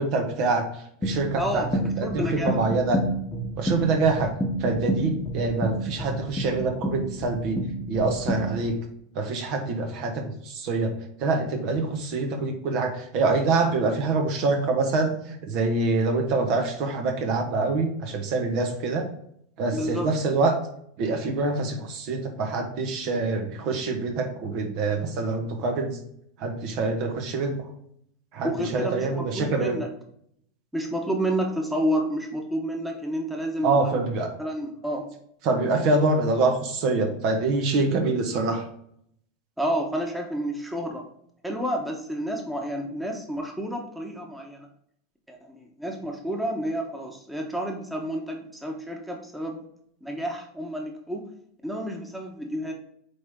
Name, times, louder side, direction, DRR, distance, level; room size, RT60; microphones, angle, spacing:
voice 1, 0.0-3.0 3.6-4.3 4.6-8.8 9.1-10.9 11.2-19.1 19.6-20.5 21.0-26.0 26.4-27.7 28.3-29.8 33.6-34.4 35.4-38.7, right 3 dB, 55° right, 4 dB, 1.5 m, -25 dB
sound 1, 1.0-8.7, right 1 dB, 15° left, 1.0 m, -29 dB
voice 2, 1.4-1.7 2.0-2.5 19.7-20.1 28.4-29.9 30.7-34.0 34.4-35.1 39.6-41.0 41.4-44.7 45.3-49.7 50.0-51.2 51.6-52.7, equal, 5° right, 1 dB, 1.3 m, -30 dB
8.6 x 3.5 x 3.8 m, 0.70 s
hypercardioid pair, 110°, 0 cm